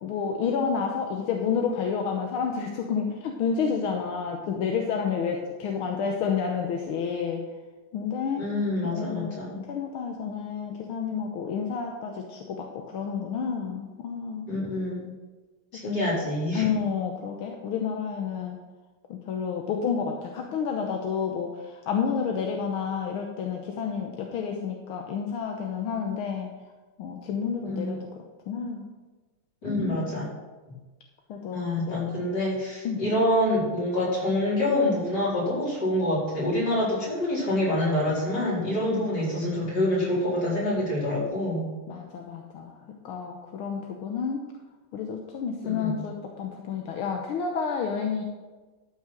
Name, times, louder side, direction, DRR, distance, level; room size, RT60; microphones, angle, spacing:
voice 1, 0.0-7.5 7.9-8.4 8.8-14.5 15.8-16.1 16.6-18.6 19.1-26.5 27.0-28.0 28.5-28.9 29.7-30.1 31.3-32.2 32.8-33.0 38.9-39.1 41.9-42.8 43.0-44.4 44.9-48.2, left 6 dB, 85° left, 2 dB, 1.8 m, -30 dB
voice 2, 8.4-9.6 14.5-15.1 15.7-16.6 27.6-27.9 29.6-30.3 31.5-41.7 45.6-46.0, left 1 dB, 50° left, -7 dB, 5.1 m, -26 dB
13.0 x 5.8 x 6.0 m, 1.3 s
omnidirectional pair, 2.3 m